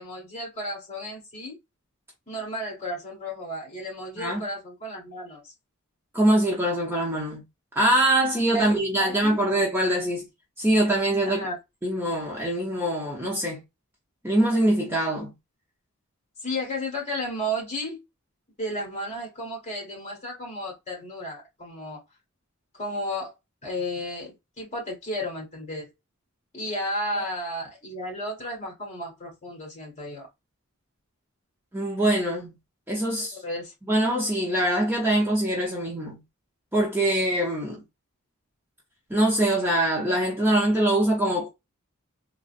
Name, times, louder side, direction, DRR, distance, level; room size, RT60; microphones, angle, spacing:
voice 1, 0.0-1.6 2.3-5.4 8.5-9.4 11.2-11.6 16.4-18.0 18.6-22.0 22.7-23.3 23.6-25.9 26.5-30.3 33.3-33.7, equal, 30° left, 1.5 m, -33 dB
voice 2, 6.1-7.4 7.7-10.3 10.6-11.4 11.8-13.6 14.2-15.3 31.7-32.5 32.9-33.4 33.9-36.2 36.7-37.8 39.1-41.5, right 1 dB, 10° right, 0.7 m, -23 dB
3.8 x 2.0 x 2.5 m
head